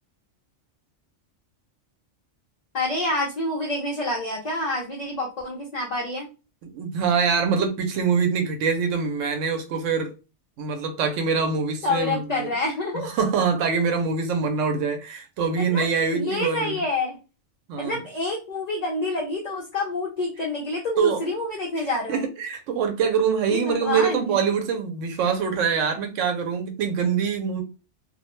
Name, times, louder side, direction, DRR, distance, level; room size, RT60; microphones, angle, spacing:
voice 1, 2.7-6.3 11.8-13.1 15.6-15.9 16.1-17.2 17.8-22.3 23.5-24.4, left 2 dB, 45° left, 0.6 m, -27 dB
voice 2, 6.6-10.1 10.6-12.5 13.0-16.8 17.7-18.0 21.0-21.2 21.8-27.6, right 6 dB, 85° right, 0.9 m, -24 dB
2.4 x 2.0 x 3.0 m
omnidirectional pair, 1.3 m